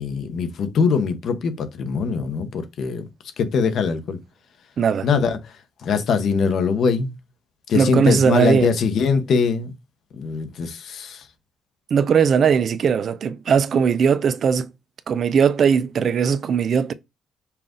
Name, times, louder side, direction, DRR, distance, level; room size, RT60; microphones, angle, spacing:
voice 1, 0.0-3.1 3.4-4.2 5.0-5.6 5.8-7.1 7.7-9.7 10.1-11.3, left 5 dB, 65° left, 0.9 m, -22 dB
voice 2, 4.8-5.1 7.7-8.7 11.9-14.7 15.1-16.9, right 6 dB, 55° right, 0.4 m, -19 dB
5.7 x 2.5 x 3.7 m
cardioid pair, 90°, 0 cm